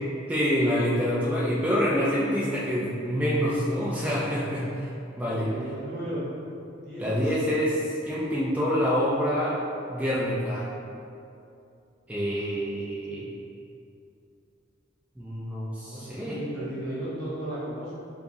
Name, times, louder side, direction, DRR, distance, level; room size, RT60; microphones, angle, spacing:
voice 1, 0.3-4.9 5.2-5.5 7.0-9.6 9.9-10.7 12.1-13.3 15.2-16.4, equal, 10° right, -8 dB, 0.4 m, -26 dB
voice 2, 5.3-6.3 6.8-7.4 15.7-18.0, right 1 dB, 60° right, -8 dB, 1.2 m, -35 dB
4.9 x 2.4 x 2.6 m, 2.6 s
head